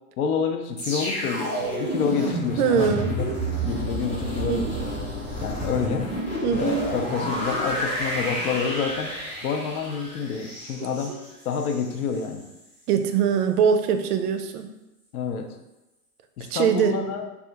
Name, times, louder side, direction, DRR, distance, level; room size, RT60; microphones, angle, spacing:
voice 1, 0.2-3.3 3.6-4.9 5.4-6.1 6.6-9.1 9.4-11.2 11.5-12.4 15.1-15.5 16.4-17.2, left 6 dB, 70° left, 5 dB, 0.6 m, -28 dB
sound 1, 0.8-11.9 12.2-12.4, equal, 15° left, 0.6 m, -30 dB
voice 2, 2.6-3.4 4.5-4.7 6.4-6.8 10.8-11.2 12.9-14.7 16.5-16.9, right 7 dB, 75° right, 7 dB, 0.5 m, -23 dB
2.4 x 2.4 x 3.9 m, 0.96 s
supercardioid pair, 155°, 47 cm